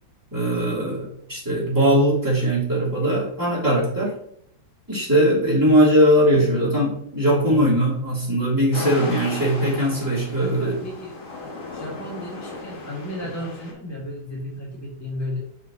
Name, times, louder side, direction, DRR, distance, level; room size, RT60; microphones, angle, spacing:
voice 1, 0.3-4.1 4.9-10.8, equal, 10° right, -7 dB, 2.5 m, -20 dB
voice 2, 7.4-7.8 10.4-11.2 11.7-15.4, left 1 dB, 10° left, -5 dB, 2.0 m, -33 dB
sound 1, 8.7-13.7, left 2 dB, 85° left, 2.4 m, -35 dB
6.6 x 5.5 x 2.9 m, 0.70 s
omnidirectional pair, 2.2 m